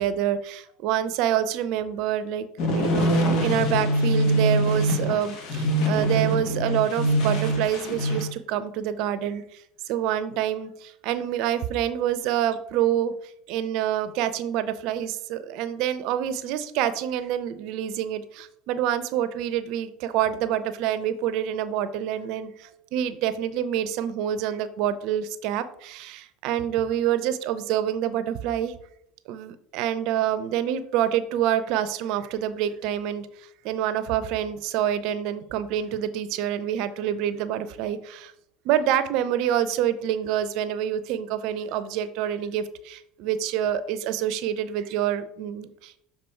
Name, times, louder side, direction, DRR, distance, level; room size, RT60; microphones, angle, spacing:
voice 1, 0.0-2.5 2.7-13.1 13.5-28.8 29.3-38.3 38.6-46.0, right 10 dB, 65° right, 13 dB, 0.6 m, -27 dB
sound 1, 2.6-8.3, right 1 dB, 60° left, 1.7 m, -23 dB
6.8 x 4.2 x 4.5 m, 0.71 s
hypercardioid pair, 80°, 0 cm